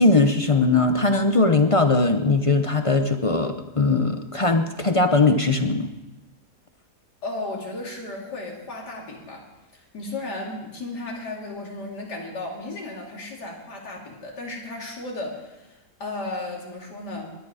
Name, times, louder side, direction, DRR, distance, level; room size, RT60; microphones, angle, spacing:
voice 1, 0.0-5.9, left 3 dB, 40° left, 7 dB, 0.4 m, -20 dB
voice 2, 7.2-9.4 9.7-17.3, left 2 dB, 80° left, -1 dB, 3.4 m, -34 dB
21.0 x 9.8 x 5.0 m, 1.0 s
omnidirectional pair, 1.8 m